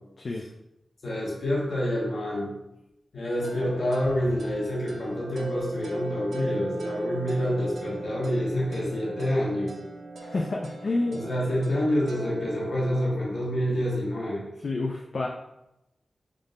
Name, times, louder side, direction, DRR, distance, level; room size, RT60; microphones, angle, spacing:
voice 1, 1.0-2.6 3.1-9.7 11.1-14.4, equal, 70° left, -4 dB, 1.3 m, -27 dB
sound 1, 3.4-13.0, right 2 dB, 75° right, 0.5 m, -38 dB
voice 2, 10.2-11.2 14.6-15.3, left 2 dB, 55° left, 0 dB, 0.4 m, -29 dB
3.6 x 2.5 x 3.9 m, 0.90 s
wide cardioid pair, 125°, 0 cm